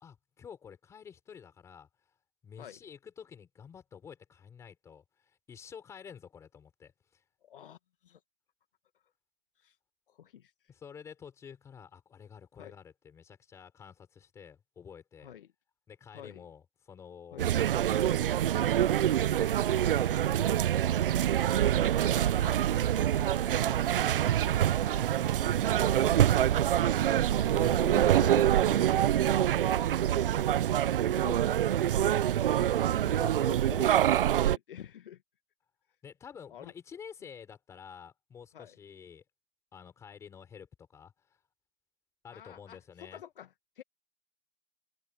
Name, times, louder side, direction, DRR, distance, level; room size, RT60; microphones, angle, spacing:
voice 1, 0.0-1.9 2.4-5.0 5.5-7.2 10.7-15.3 15.9-17.4 17.7-20.6 21.9-24.5 24.9-26.5 36.0-39.2 39.7-41.1 42.2-43.2, left 7 dB, 10° left, 4.8 m, -50 dB
voice 2, 7.4-8.2 9.6-9.7 10.1-10.5 12.6-12.7 15.2-15.5 16.1-16.4 17.3-17.5 25.5-26.0 27.3-29.3 31.1-35.2 36.5-36.7 38.5-38.8 42.3-43.5 43.8-43.9, left 9 dB, 55° left, 1.6 m, -47 dB
sound 1, 17.4-34.6, right 11 dB, 55° right, 0.4 m, -26 dB
hypercardioid pair, 175°, 33 cm